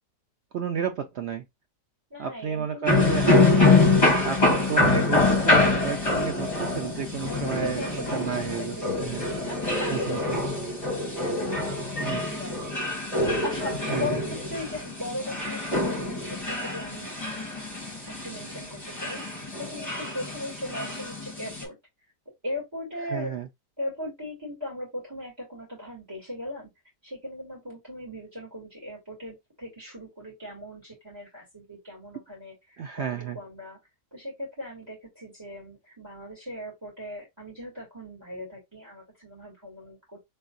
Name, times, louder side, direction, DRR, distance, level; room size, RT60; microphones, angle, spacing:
voice 1, 0.5-1.4 2.2-3.5 4.2-9.2 9.9-10.4 12.0-12.2 13.9-14.1 23.1-23.5 32.8-33.4, right 7 dB, 85° right, 0.5 m, -32 dB
voice 2, 2.1-4.0 7.2-11.8 12.1-17.1 18.0-21.8 22.4-23.4 23.8-26.7 27.0-33.8 34.1-40.2, left 1 dB, 15° right, 2.6 m, -39 dB
sound 1, 2.9-21.6, left 3 dB, 20° left, 1.9 m, -25 dB
3.9 x 3.6 x 2.5 m
omnidirectional pair, 1.7 m